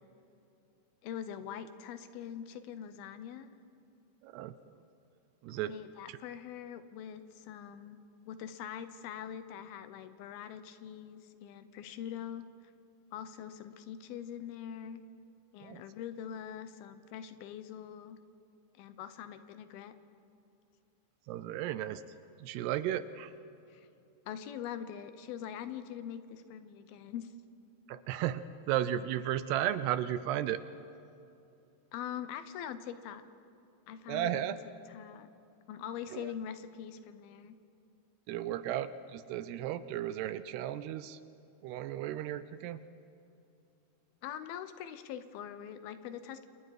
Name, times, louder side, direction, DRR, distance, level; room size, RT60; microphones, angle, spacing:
voice 1, 1.0-3.5 5.5-8.0 8.3-12.5 13.1-15.0 15.5-18.2 18.7-20.0 23.7-23.9 24.3-27.3 31.9-33.2 33.9-34.6 34.9-35.3 35.7-37.6 44.2-46.5, left 9 dB, 75° left, 11 dB, 2.5 m, -43 dB
voice 2, 4.2-4.5 5.4-5.7 6.1-6.2 15.6-15.8 21.3-22.0 22.4-23.3 27.9-30.6 34.1-34.6 36.1-36.3 38.3-41.2 41.6-42.8, right 12 dB, 80° right, 13 dB, 2.6 m, -34 dB
28.0 x 28.0 x 4.9 m, 2.7 s
omnidirectional pair, 5.0 m